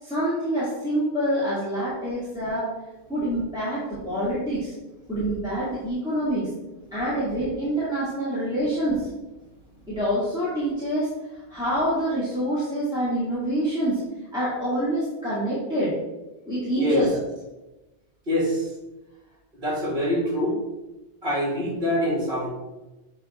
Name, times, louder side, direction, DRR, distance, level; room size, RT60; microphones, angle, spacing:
voice 1, 0.0-2.7 3.1-4.7 5.1-6.5 6.9-9.1 9.9-14.0 14.3-15.9 16.5-17.1, right 1 dB, 5° right, -11 dB, 2.1 m, -26 dB
voice 2, 18.3-18.7 19.5-20.6 21.2-22.5, equal, 55° right, -4 dB, 2.2 m, -25 dB
7.5 x 3.4 x 4.3 m, 1.0 s
omnidirectional pair, 1.1 m